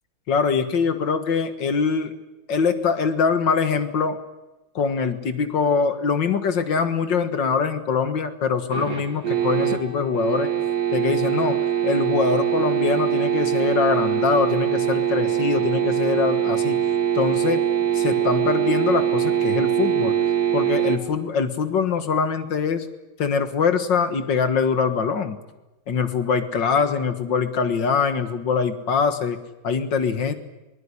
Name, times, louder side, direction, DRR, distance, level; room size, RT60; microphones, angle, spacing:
voice 1, 0.3-2.1 2.5-4.2 4.8-10.5 10.9-16.8 17.1-17.6 17.9-20.2 20.5-22.9 23.2-25.4 25.9-30.3, left 5 dB, 65° left, 9 dB, 2.3 m, -23 dB
sound 1, 8.7-21.0, right 10 dB, 50° right, 2.7 m, -23 dB
22.0 x 20.5 x 9.9 m, 1.0 s
omnidirectional pair, 2.1 m